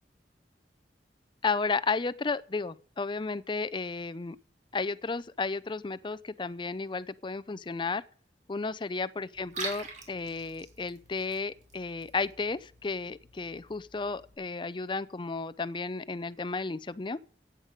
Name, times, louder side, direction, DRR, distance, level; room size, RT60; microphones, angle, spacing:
voice 1, 1.4-4.4 4.7-8.0 8.5-17.2, left 4 dB, 25° left, 0.5 m, -33 dB
Liquid, 9.3-14.3, right 3 dB, 45° right, 3.5 m, -45 dB
15.0 x 8.9 x 5.1 m
head